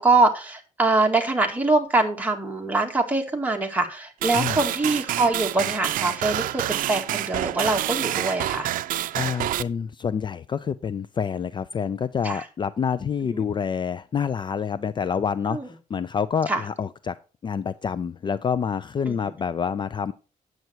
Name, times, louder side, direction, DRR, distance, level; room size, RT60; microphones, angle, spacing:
voice 1, 0.0-8.7 12.2-12.4 13.3-13.4 15.5-15.7 16.5-16.6 19.1-19.2, right 2 dB, 10° right, 2 dB, 2.1 m, -23 dB
sound 1, 4.2-9.6, right 13 dB, 85° right, 0.5 m, -27 dB
voice 2, 9.1-17.2 17.4-20.1, left 7 dB, 35° left, 15 dB, 0.4 m, -27 dB
9.4 x 7.8 x 4.5 m, 0.34 s
cardioid pair, 120°, 14 cm